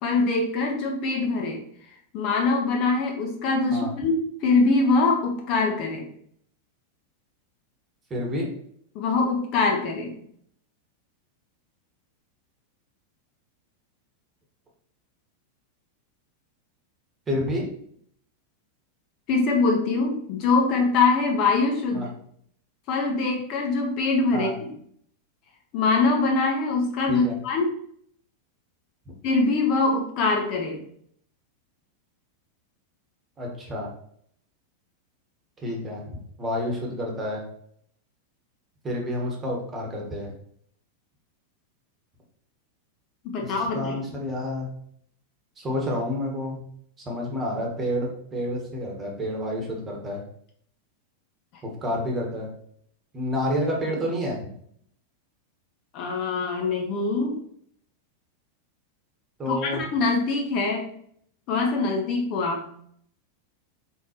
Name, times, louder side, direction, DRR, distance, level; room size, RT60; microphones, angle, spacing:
voice 1, 0.0-1.6 2.1-6.1 8.9-10.2 19.3-22.1 22.9-24.7 25.7-27.7 29.2-30.8 43.2-44.0 55.9-57.4 59.5-60.9 61.5-62.7, left 3 dB, 40° left, 2 dB, 0.8 m, -23 dB
voice 2, 8.1-8.5 17.3-17.7 21.9-22.1 24.3-24.5 27.1-27.3 33.4-33.9 35.6-36.0 36.4-37.4 38.8-40.3 43.4-44.7 45.6-46.6 47.0-50.2 51.6-52.5 53.1-54.4 59.4-59.8, left 1 dB, 20° right, -1 dB, 1.3 m, -29 dB
4.4 x 3.8 x 3.0 m, 0.65 s
figure-of-eight pair, 90°, 0 cm